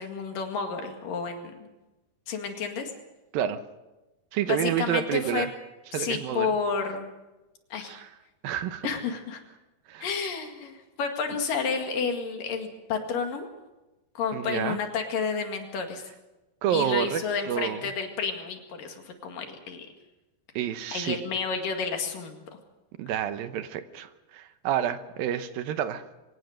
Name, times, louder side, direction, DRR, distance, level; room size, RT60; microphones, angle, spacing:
voice 1, 0.0-1.7 2.3-2.9 4.5-5.5 5.9-7.1 7.7-7.9 8.8-9.4 10.0-13.5 14.2-16.1 16.7-19.9 20.9-22.4, left 5 dB, 60° left, 4 dB, 3.6 m, -31 dB
voice 2, 4.3-5.5 5.9-6.5 7.9-8.1 8.4-8.9 9.9-10.1 14.3-14.8 16.6-17.8 20.6-21.2 23.0-26.0, right 10 dB, 75° right, 10 dB, 2.6 m, -29 dB
24.0 x 17.5 x 6.5 m, 1.0 s
omnidirectional pair, 4.5 m